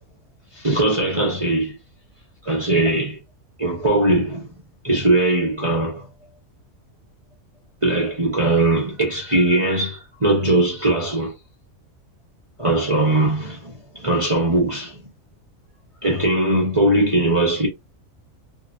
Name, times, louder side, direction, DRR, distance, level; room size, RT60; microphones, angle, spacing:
voice 1, 0.5-1.8 2.4-3.2 3.6-4.5 4.8-6.1 7.8-11.3 12.6-15.0 16.0-17.7, right 2 dB, 25° right, 1.0 m, -20 dB
3.6 x 2.9 x 2.6 m
omnidirectional pair, 1.4 m